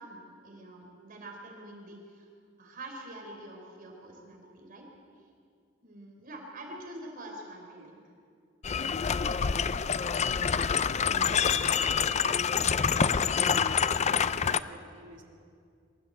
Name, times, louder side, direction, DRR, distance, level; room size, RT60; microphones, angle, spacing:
voice 1, 0.0-2.3 2.6-4.9 5.8-8.0 14.0-14.3, right 1 dB, 45° right, 1 dB, 4.1 m, -46 dB
sound 1, 8.6-14.6, left 6 dB, 35° left, 0.5 m, -26 dB
voice 2, 9.2-13.7 14.2-15.2, right 1 dB, 75° right, 1 dB, 2.9 m, -52 dB
24.0 x 13.5 x 8.1 m, 2.3 s
head